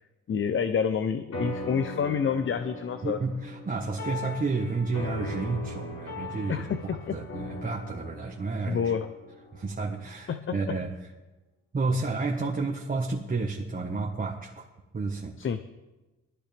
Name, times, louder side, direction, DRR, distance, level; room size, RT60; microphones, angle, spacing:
voice 1, 0.3-3.2 6.5-7.2 8.7-9.1 10.3-10.7 15.4-15.6, left 7 dB, 40° left, 9 dB, 0.8 m, -28 dB
sound 1, 1.3-10.0, left 2 dB, 65° left, 5.2 m, -39 dB
voice 2, 3.0-6.7 7.1-8.9 9.5-10.9 11.7-14.7 14.9-15.4, right 3 dB, 30° right, -1 dB, 1.5 m, -31 dB
19.5 x 13.5 x 3.5 m, 1.1 s
cardioid pair, 90°, 30 cm